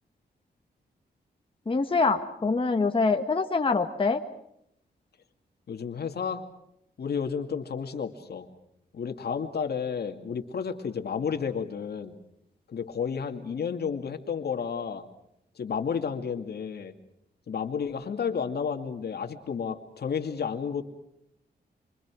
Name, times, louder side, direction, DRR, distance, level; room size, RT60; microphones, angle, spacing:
voice 1, 1.6-4.2, left 4 dB, 30° left, 4 dB, 1.6 m, -25 dB
voice 2, 5.7-6.4 7.0-8.5 8.9-12.2 12.7-15.1 15.6-16.9 17.5-20.8, left 6 dB, 70° left, 5 dB, 2.5 m, -31 dB
27.0 x 25.0 x 6.3 m, 0.76 s
cardioid pair, 90°, 17 cm